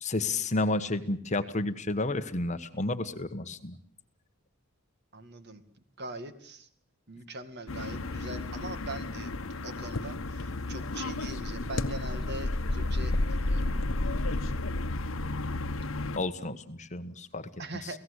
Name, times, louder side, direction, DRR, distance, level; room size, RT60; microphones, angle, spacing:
voice 1, 0.0-3.8 16.1-17.5 17.8-17.9, left 2 dB, 35° left, 9 dB, 1.4 m, -31 dB
voice 2, 5.1-5.6 6.0-6.7 7.1-9.3 9.6-13.7 14.4-14.6 17.6-18.0, right 2 dB, 55° right, 10 dB, 2.1 m, -42 dB
sound 1, 7.7-16.2, left 2 dB, 75° left, 1.1 m, -32 dB
30.0 x 18.0 x 8.2 m, 0.62 s
head